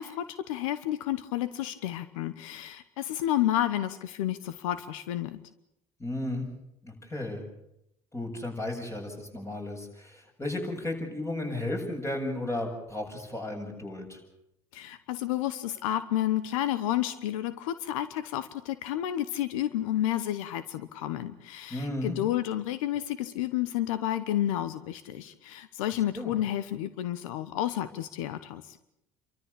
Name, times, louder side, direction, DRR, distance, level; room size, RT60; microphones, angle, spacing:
voice 1, 0.0-5.4 14.7-28.8, left 12 dB, 90° left, 14 dB, 1.0 m, -31 dB
voice 2, 6.0-6.5 6.8-7.4 8.1-14.2 21.7-22.2 26.2-26.3, left 1 dB, 15° left, 2 dB, 7.5 m, -34 dB
29.5 x 13.5 x 8.4 m, 0.81 s
supercardioid pair, 80°, 17 cm